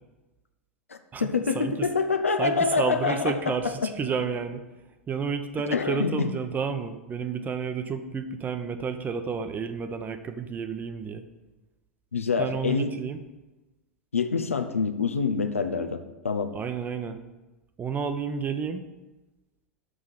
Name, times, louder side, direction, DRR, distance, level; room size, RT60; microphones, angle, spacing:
voice 1, 0.9-3.9 5.7-6.3 12.1-12.9 14.1-16.5, left 5 dB, 80° left, 8 dB, 0.7 m, -26 dB
voice 2, 1.5-1.9 2.4-4.6 5.1-11.2 12.4-13.2 16.5-17.2 17.8-18.8, right 5 dB, 25° right, 8 dB, 0.8 m, -31 dB
6.3 x 6.2 x 7.4 m, 1.1 s
figure-of-eight pair, 85°, 7 cm